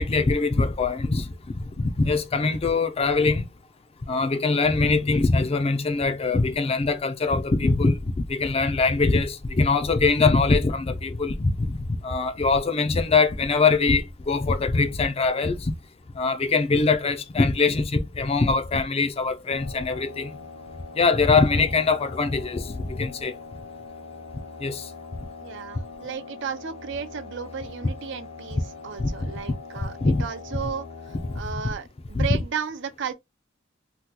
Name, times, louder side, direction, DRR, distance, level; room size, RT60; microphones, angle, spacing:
voice 1, 0.0-1.3 1.8-3.4 4.1-15.7 16.1-20.3 20.9-23.4 24.6-24.9 29.0-29.3 29.8-30.2 31.3-31.4 32.1-32.3, left 3 dB, 30° left, 0.4 m, -23 dB
sound 1, 19.5-31.4, left 4 dB, 80° left, 0.7 m, -42 dB
voice 2, 25.4-33.1, right 6 dB, 65° right, 0.5 m, -34 dB
2.9 x 2.3 x 3.7 m
head